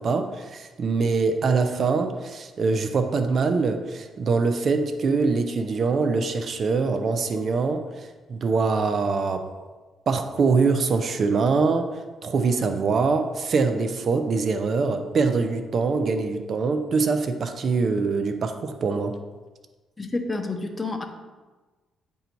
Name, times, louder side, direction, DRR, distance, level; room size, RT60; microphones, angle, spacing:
voice 1, 0.0-9.5 10.1-19.1, right 4 dB, 50° right, 7 dB, 0.5 m, -24 dB
voice 2, 20.0-21.1, left 3 dB, 20° left, 4 dB, 0.7 m, -29 dB
8.1 x 2.7 x 4.4 m, 1.3 s
cardioid pair, 90°, 0 cm